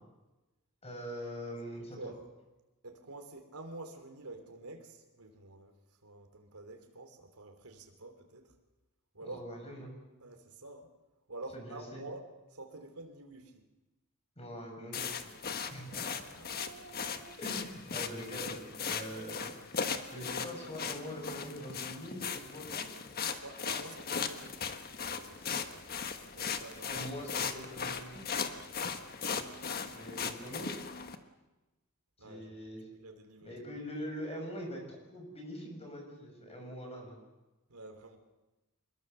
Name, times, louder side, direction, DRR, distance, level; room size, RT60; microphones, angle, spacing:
voice 1, 0.8-2.1 9.2-9.9 11.5-12.0 14.4-15.3 15.7-16.1 17.4-19.5 20.1-22.9 26.8-28.3 29.9-30.8 32.2-32.9 33.4-37.2, equal, 30° left, 2 dB, 6.7 m, -43 dB
voice 2, 2.8-5.7 6.0-8.5 9.1-9.4 10.2-10.9 11.3-12.2 12.5-13.6 15.9-18.0 23.3-24.8 25.1-25.9 26.3-27.0 32.2-32.5 33.0-33.5 37.7-38.2, right 2 dB, 85° right, 5 dB, 3.3 m, -48 dB
sound 1, 14.9-31.2, left 6 dB, 45° left, 1.4 m, -38 dB
26.0 x 21.5 x 6.9 m, 1.1 s
head